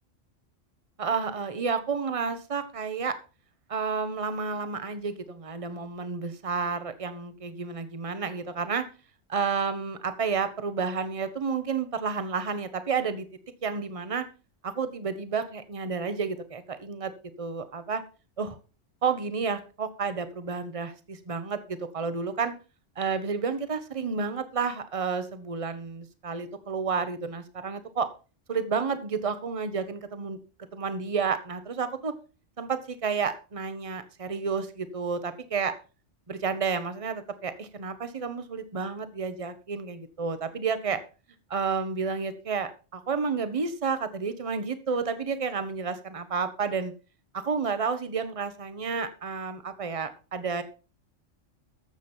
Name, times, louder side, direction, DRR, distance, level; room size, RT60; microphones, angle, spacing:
voice 1, 1.0-3.2 3.7-8.9 9.3-13.3 13.6-14.3 14.6-17.1 17.4-18.0 18.4-18.6 19.0-22.5 23.0-28.1 28.5-30.4 30.7-32.1 32.6-35.7 36.3-41.0 41.5-46.9 47.3-50.6, right 5 dB, 30° right, 11 dB, 1.1 m, -30 dB
14.0 x 7.2 x 4.4 m, 0.34 s
omnidirectional pair, 1.3 m